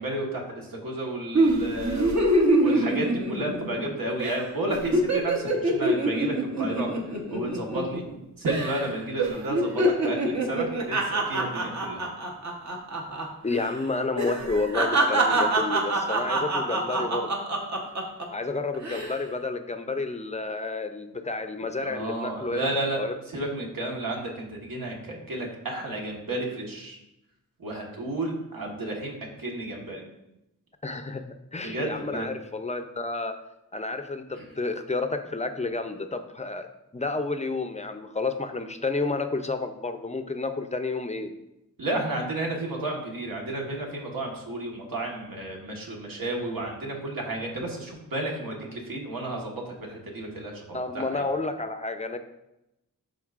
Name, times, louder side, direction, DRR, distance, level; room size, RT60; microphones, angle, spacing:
voice 1, 0.0-8.0 8.4-12.0 15.3-15.5 21.8-23.0 23.3-27.0 27.6-29.1 29.4-30.0 31.6-32.3 34.3-34.4 41.8-51.2, right 1 dB, 80° right, -1 dB, 1.4 m, -32 dB
sound 1, 1.3-3.9 4.2-4.4 4.7-8.1 8.5-8.9 9.2-13.3 13.5-13.7 14.2-18.2 18.7-19.2, right 2 dB, 50° right, 1.0 m, -25 dB
voice 2, 13.4-17.3 18.3-22.7 23.0-23.1 30.8-33.4 33.7-36.7 36.9-41.3 50.7-52.2, left 3 dB, 20° left, 8 dB, 0.5 m, -30 dB
11.5 x 3.9 x 2.4 m, 0.89 s
wide cardioid pair, 100°, 34 cm